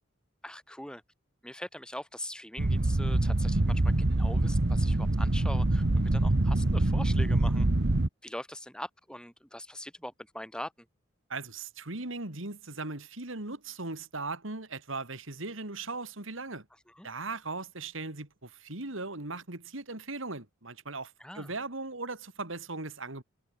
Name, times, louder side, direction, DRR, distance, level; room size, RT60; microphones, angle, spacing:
voice 1, 0.4-1.0 1.4-7.7 8.2-10.9 16.9-17.1 21.2-21.5, left 1 dB, 5° left, 5.4 m, -42 dB
sound 1, 2.6-8.1, right 2 dB, 55° right, 1.1 m, -25 dB
voice 2, 11.3-16.6 17.0-23.2, right 3 dB, 75° right, 3.1 m, -38 dB
head